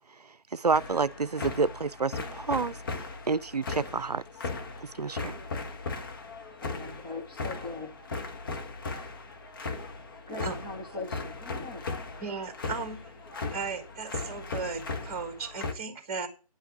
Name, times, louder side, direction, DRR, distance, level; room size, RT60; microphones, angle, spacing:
voice 1, 0.5-4.2 5.0-5.3, right 4 dB, 85° right, 0.5 m, -29 dB
sound 1, 0.7-15.7, left 3 dB, 35° left, 1.4 m, -38 dB
voice 2, 6.6-8.0 10.3-12.0, left 3 dB, 10° left, 0.5 m, -40 dB
voice 3, 12.2-13.1 13.5-16.3, right 5 dB, 20° right, 1.6 m, -36 dB
9.6 x 5.6 x 7.7 m
figure-of-eight pair, 150°, 20 cm